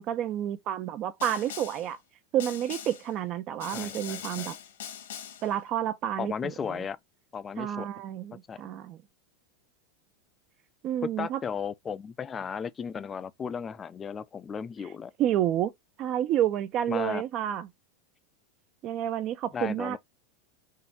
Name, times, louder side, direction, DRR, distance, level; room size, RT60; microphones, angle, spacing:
voice 1, 0.0-2.0 2.3-4.5 5.4-6.8 7.6-9.0 10.8-11.4 15.2-15.7 16.0-17.7 18.8-20.0, right 11 dB, 45° right, 0.8 m, -30 dB
Snare drum, 1.2-1.9 2.4-3.1 3.6-5.5, left 9 dB, 85° left, 1.6 m, -41 dB
voice 2, 3.7-4.5 6.2-7.0 7.3-7.9 8.5-8.6 11.2-15.1 16.9-17.2 19.5-20.0, left 6 dB, 25° left, 0.5 m, -35 dB
4.7 x 2.8 x 3.4 m
supercardioid pair, 120°, 0 cm